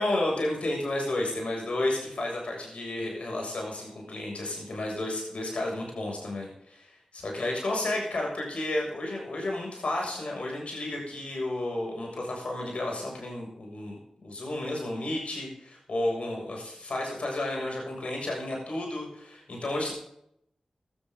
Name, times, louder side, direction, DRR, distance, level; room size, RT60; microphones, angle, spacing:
voice 1, 0.0-19.9, left 1 dB, 80° left, -1 dB, 7.1 m, -32 dB
17.0 x 13.0 x 4.0 m, 0.76 s
cardioid pair, 45°, 2 cm